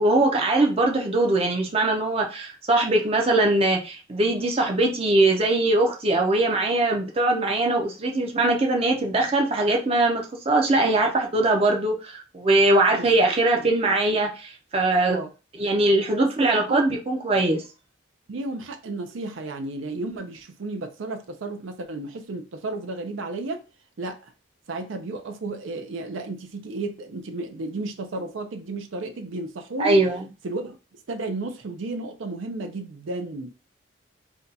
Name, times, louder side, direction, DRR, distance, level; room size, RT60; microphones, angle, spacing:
voice 1, 0.0-15.2 15.6-17.6 29.8-30.2, right 2 dB, 30° right, 0.5 m, -21 dB
voice 2, 16.2-16.8 18.3-23.6 24.0-24.2 24.7-30.0 30.4-33.5, right 2 dB, 80° right, 0.5 m, -33 dB
2.6 x 2.2 x 3.9 m
head